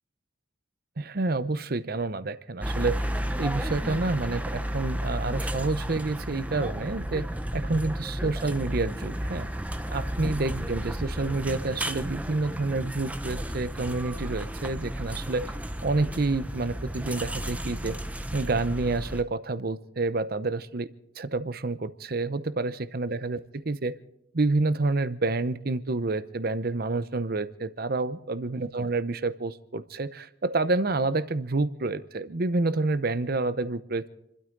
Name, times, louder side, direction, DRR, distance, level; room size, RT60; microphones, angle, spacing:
voice 1, 1.0-3.0 3.4-7.3 7.5-9.5 9.9-15.5 15.8-18.0 18.3-20.9 21.2-23.4 23.7-23.9 24.3-34.1, right 3 dB, 50° right, 14 dB, 0.7 m, -28 dB
sound 1, 2.6-19.2, equal, 10° right, 0.7 m, -33 dB
29.5 x 12.5 x 3.9 m, 0.82 s
head